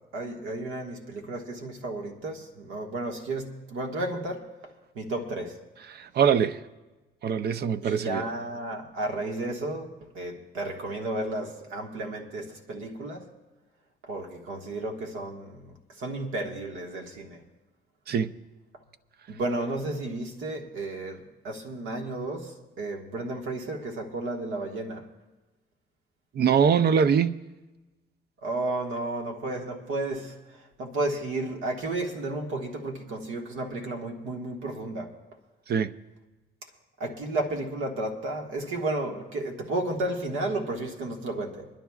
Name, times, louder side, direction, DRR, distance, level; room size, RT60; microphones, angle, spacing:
voice 1, 0.1-4.5 4.9-5.6 7.8-13.3 14.0-17.4 19.3-25.0 28.4-30.4 30.8-35.1 37.0-41.7, right 2 dB, 90° right, 1.6 m, -33 dB
voice 2, 5.9-6.6 7.2-8.3 18.1-18.3 26.3-27.4 35.7-35.9, right 7 dB, 55° right, 0.5 m, -23 dB
27.0 x 11.5 x 2.4 m
cardioid pair, 90°, 20 cm